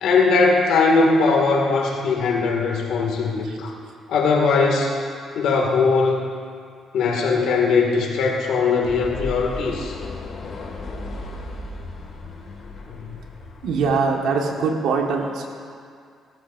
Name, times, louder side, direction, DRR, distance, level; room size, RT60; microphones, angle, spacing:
voice 1, 0.0-3.7 4.1-5.0 5.3-6.3 6.9-10.0 12.9-13.1, left 4 dB, 80° left, 0 dB, 2.2 m, -20 dB
sound 1, 8.8-13.9, left 2 dB, 55° left, 2.1 m, -35 dB
voice 2, 13.6-15.5, right 4 dB, 85° right, 1 dB, 1.6 m, -22 dB
18.5 x 13.5 x 2.7 m, 2.2 s
cardioid pair, 90°, 0 cm